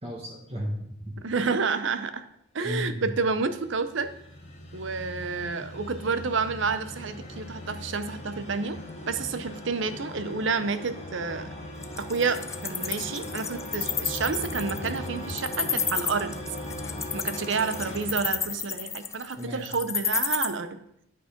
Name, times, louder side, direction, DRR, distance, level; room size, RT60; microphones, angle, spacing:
voice 1, 0.0-1.2 2.6-3.1 17.2-17.3 19.4-19.7, equal, 30° right, -4 dB, 1.4 m, -34 dB
voice 2, 1.2-2.2 2.5-4.1 4.7-8.8 9.1-11.5 12.0-16.3 17.1-20.8, right 4 dB, 60° right, 11 dB, 0.6 m, -29 dB
sound 1, 3.1-19.3, left 1 dB, 30° left, 1.7 m, -39 dB
Wild animals, 11.8-20.5, left 7 dB, 15° left, 0.3 m, -30 dB
8.9 x 5.4 x 5.1 m, 0.74 s
head